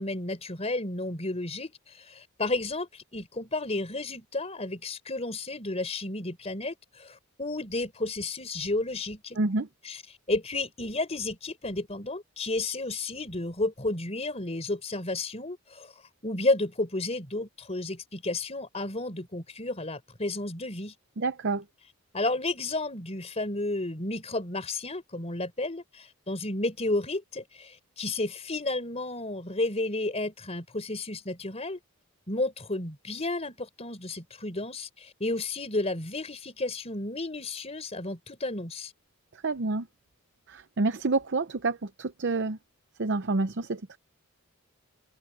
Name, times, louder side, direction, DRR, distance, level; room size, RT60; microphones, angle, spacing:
voice 1, 0.0-9.4 9.8-10.0 10.3-15.9 16.2-20.9 22.1-31.8 32.3-38.9, left 2 dB, 30° left, 4.0 m, -32 dB
voice 2, 9.4-9.7 21.2-21.6 39.3-39.9 40.5-42.6 43.0-44.0, right 3 dB, 55° right, 0.7 m, -28 dB
head